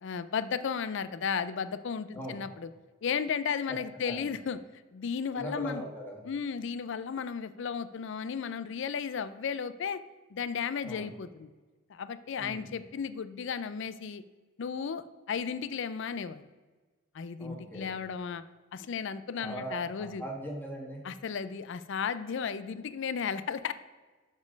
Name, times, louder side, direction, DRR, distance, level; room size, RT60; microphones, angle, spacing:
voice 1, 0.0-2.7 3.0-4.6 4.9-5.8 6.2-10.0 10.3-11.5 11.9-14.2 14.6-16.4 17.1-18.4 18.7-20.2 21.0-23.7, left 6 dB, 60° left, 14 dB, 0.4 m, -34 dB
voice 2, 5.3-6.2 10.8-11.1 12.4-12.6 17.4-17.9 19.4-21.0, right 1 dB, 10° left, -2 dB, 1.7 m, -40 dB
7.2 x 5.3 x 5.1 m, 1.3 s
head